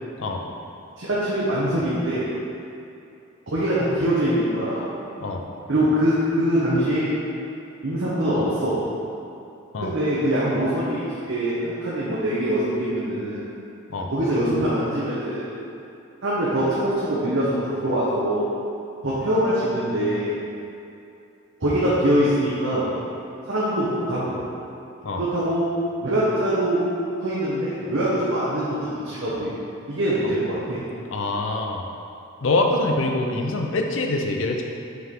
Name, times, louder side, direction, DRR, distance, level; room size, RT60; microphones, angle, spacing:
voice 1, 1.0-2.2 3.5-4.8 5.7-7.2 7.8-8.8 9.8-13.4 14.1-15.5 16.2-18.5 19.0-20.4 21.6-22.9 23.5-24.4 25.2-25.6 26.0-26.8 27.2-29.5 29.9-30.8, right 1 dB, 60° right, -9 dB, 1.0 m, -23 dB
voice 2, 31.1-31.8 32.4-34.6, left 2 dB, 65° left, 2 dB, 0.6 m, -24 dB
6.2 x 4.7 x 3.6 m, 2.7 s
head